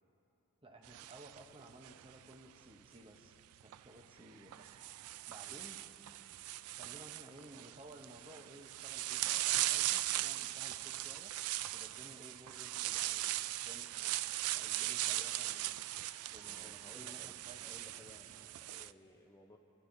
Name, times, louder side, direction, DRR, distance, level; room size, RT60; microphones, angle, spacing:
voice 1, 0.6-3.4 3.6-4.8 5.3-5.8 6.7-11.3 11.7-13.3 13.6-14.1 14.5-15.9 16.3-17.7 18.3-18.4, right 1 dB, 25° right, 3 dB, 0.7 m, -56 dB
sound 1, 0.8-2.3 3.6-3.8 4.5-18.9, right 15 dB, 90° right, 0.3 m, -39 dB
voice 2, 16.5-19.6, left 1 dB, 15° left, 2 dB, 0.5 m, -59 dB
26.0 x 12.5 x 2.6 m, 2.9 s
head